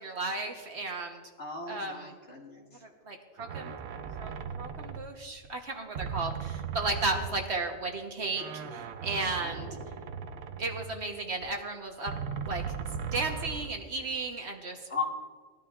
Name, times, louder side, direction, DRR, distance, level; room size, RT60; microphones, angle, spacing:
voice 1, 0.0-1.2 1.7-2.1 2.8-3.8 4.2-4.3 4.6-9.7 10.6-12.1 12.4-12.6 13.1-14.8, right 3 dB, 55° right, 3 dB, 1.3 m, -34 dB
voice 2, 1.4-2.6 9.4-9.9 14.9-15.0, left 5 dB, 55° left, -2 dB, 2.4 m, -37 dB
sound 1, 3.4-5.6 5.9-7.8 8.3-11.5 12.1-14.0, right 6 dB, 80° right, 1.1 m, -38 dB
20.0 x 12.5 x 2.4 m, 1.5 s
omnidirectional pair, 1.4 m